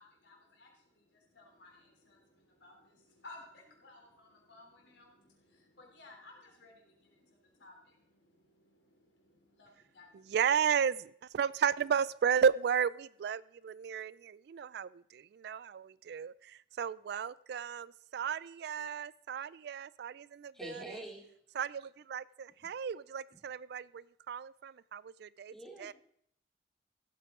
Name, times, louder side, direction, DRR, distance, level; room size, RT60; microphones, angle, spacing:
voice 1, 0.0-10.4, left 2 dB, 75° left, 0 dB, 3.3 m, -58 dB
voice 2, 10.1-21.0 21.5-25.9, right 7 dB, 60° right, 20 dB, 0.3 m, -34 dB
voice 3, 20.5-21.2 25.5-25.9, right 1 dB, ahead, -3 dB, 2.6 m, -45 dB
15.5 x 8.3 x 3.7 m, 0.68 s
head